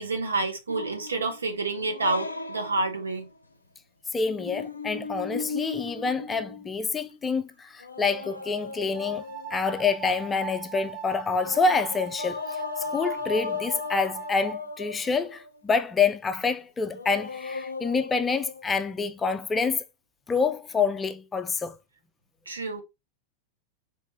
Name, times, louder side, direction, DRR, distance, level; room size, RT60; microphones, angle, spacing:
voice 1, 0.0-3.3 22.5-22.8, right 3 dB, 75° right, 0.9 m, -29 dB
sound 1, 0.7-3.3 4.2-7.1 7.8-9.9 11.4-15.5 16.9-18.9, left 4 dB, 80° left, 0.5 m, -37 dB
voice 2, 4.1-9.2 9.5-19.8 20.3-21.7, left 4 dB, 15° left, 0.4 m, -27 dB
sound 2, 8.9-14.5, right 9 dB, 40° right, 0.6 m, -40 dB
3.3 x 3.2 x 3.0 m
figure-of-eight pair, 90°, 0 cm